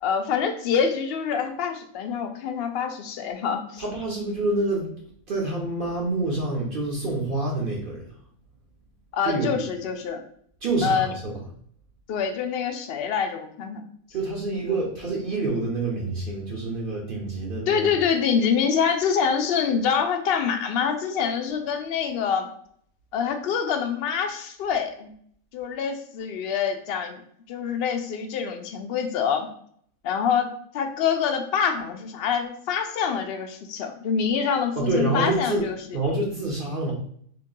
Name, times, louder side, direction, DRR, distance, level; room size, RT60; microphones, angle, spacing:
voice 1, 0.0-3.8 9.1-10.2 10.8-11.1 12.1-13.8 17.7-22.5 23.1-25.1 25.5-27.2 27.5-29.5 30.0-30.5 30.7-36.0, left 7 dB, 65° left, 6 dB, 0.6 m, -25 dB
voice 2, 3.8-4.9 5.3-8.0 9.2-9.6 10.6-11.4 14.1-17.9 34.7-35.6 35.9-36.9, right 2 dB, 50° right, -2 dB, 0.8 m, -27 dB
2.9 x 2.6 x 3.9 m, 0.63 s
omnidirectional pair, 1.4 m